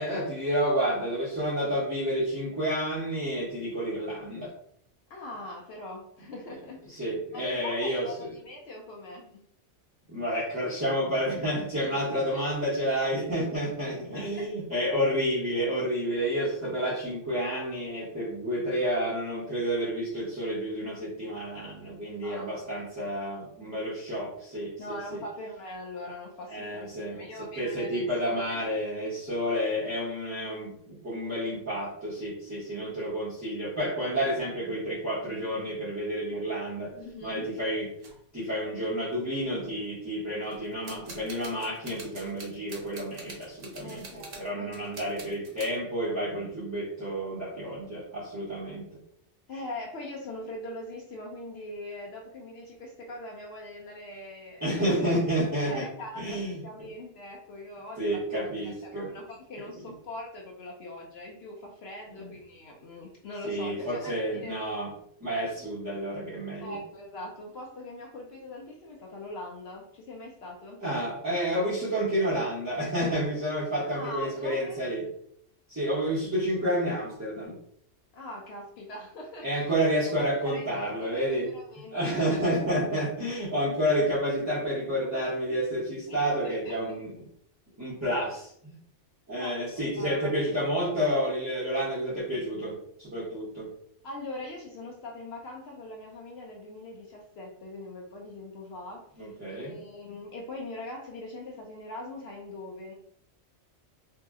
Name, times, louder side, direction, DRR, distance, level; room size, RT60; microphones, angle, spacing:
voice 1, 0.0-4.5 6.9-8.3 10.1-25.2 26.5-36.9 37.2-37.9 38.3-44.0 44.4-48.8 54.6-55.9 56.2-56.6 58.0-59.1 59.6-59.7 62.2-62.3 63.4-64.9 65.2-66.8 70.8-75.1 75.7-77.5 79.4-81.5 81.9-87.1 87.8-88.7 89.3-93.7 99.2-99.7, equal, 15° right, -9 dB, 0.7 m, -30 dB
voice 2, 5.1-7.0 7.3-9.4 11.7-12.4 13.8-14.5 22.2-22.7 24.8-28.6 36.9-37.5 43.8-45.0 49.5-55.0 55.7-64.5 66.6-70.8 73.8-74.8 78.1-79.7 80.2-82.3 86.1-86.8 89.4-90.3 94.0-99.3 99.6-102.9, left 1 dB, 65° left, -1 dB, 0.7 m, -42 dB
sound 1, 36.8-37.2 38.0-38.2 38.8-38.9 39.1-39.6 40.4-45.8, right 3 dB, 60° right, 0.9 m, -46 dB
2.7 x 2.0 x 3.5 m, 0.68 s
omnidirectional pair, 1.2 m